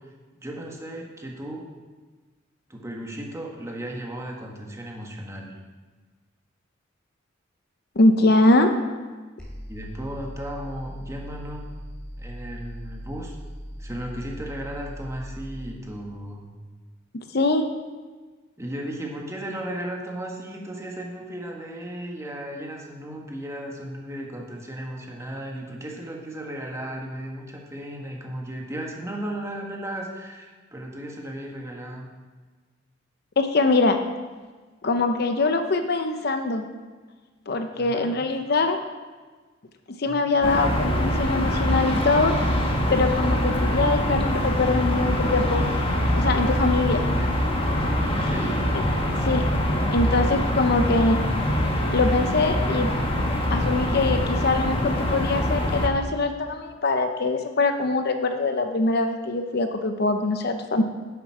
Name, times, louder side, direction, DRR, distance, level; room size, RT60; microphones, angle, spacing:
voice 1, 0.4-1.7 2.7-5.5 9.7-11.6 12.2-13.4 13.8-16.5 18.6-32.1 37.8-38.1 40.0-40.4 47.2-47.3 48.2-48.6, right 1 dB, 15° right, -1 dB, 1.6 m, -35 dB
voice 2, 8.0-8.7 17.1-17.6 33.4-34.0 34.8-36.7 37.5-38.8 40.0-42.3 42.9-45.7 46.1-47.0 48.7-48.8 49.2-49.4 49.9-51.2 51.9-52.9 53.5-60.8, left 3 dB, 55° left, 6 dB, 0.7 m, -23 dB
sound 1, 9.4-15.8, equal, 5° left, 2.7 m, -39 dB
sound 2, 40.4-55.9, equal, 30° left, 1.1 m, -24 dB
11.0 x 8.0 x 4.8 m, 1.4 s
head